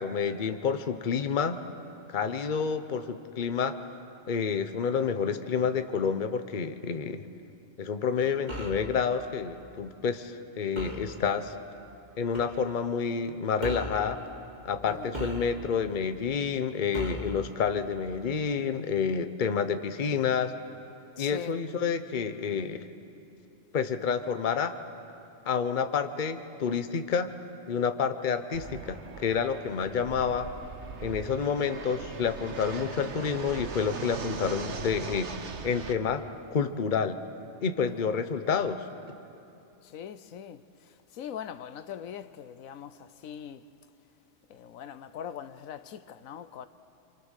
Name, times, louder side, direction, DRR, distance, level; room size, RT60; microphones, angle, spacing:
voice 1, 0.0-1.6 2.1-3.7 4.3-7.3 7.8-11.5 12.2-14.2 14.6-20.5 21.2-22.9 23.7-24.8 25.5-27.3 27.7-30.5 31.0-35.3 35.6-36.2 36.5-37.2 37.6-38.9, left 6 dB, 40° left, 1.0 m, -29 dB
sound 1, 8.5-8.9 10.8-11.1 12.3-12.6 13.6-14.0 15.1-15.8 16.9-17.4, equal, 35° right, 2.7 m, -36 dB
voice 2, 21.2-21.6 37.8-38.1 39.8-43.6 44.5-46.7, left 8 dB, 85° left, 1.2 m, -42 dB
Fixed-wing aircraft airplane, 28.5-35.9, right 5 dB, 60° right, 1.4 m, -40 dB
27.5 x 27.0 x 6.5 m
omnidirectional pair, 1.4 m